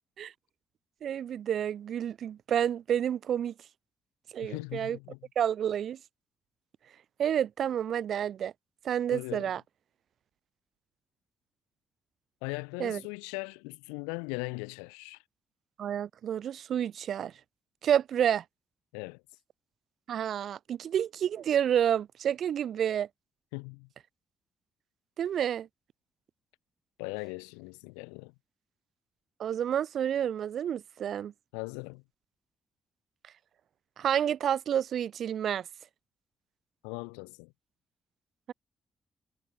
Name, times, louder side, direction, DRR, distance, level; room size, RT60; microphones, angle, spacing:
voice 1, 1.0-3.5 4.3-5.0 5.4-6.0 7.2-8.5 8.8-9.6 12.8-13.0 15.8-17.3 17.8-18.4 20.1-23.1 25.2-25.7 29.4-31.3 34.0-35.7, right 9 dB, 60° right, 0.5 m, -29 dB
voice 2, 4.4-5.2 9.1-9.5 12.4-15.2 18.9-19.2 23.5-23.9 27.0-28.3 31.5-32.0 36.8-37.5, left 38 dB, 80° left, 1.0 m, -39 dB
hypercardioid pair, 40°, 0 cm